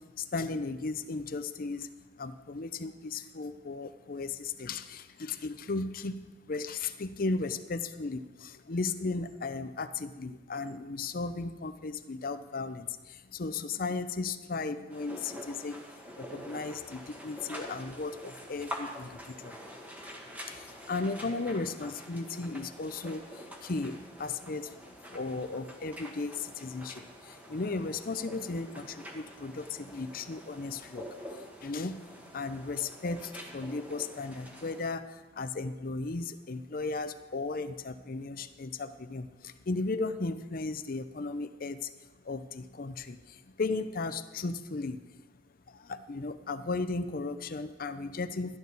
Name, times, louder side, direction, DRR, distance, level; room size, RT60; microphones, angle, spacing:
voice 1, 0.0-1.9 2.2-6.2 6.5-15.8 16.2-19.6 20.5-32.0 32.3-41.9 42.2-45.0 45.7-48.6, left 3 dB, 50° left, 11 dB, 0.6 m, -36 dB
sound 1, 14.9-34.8, equal, 10° right, 1.3 m, -46 dB
13.5 x 11.0 x 4.1 m, 1.2 s
head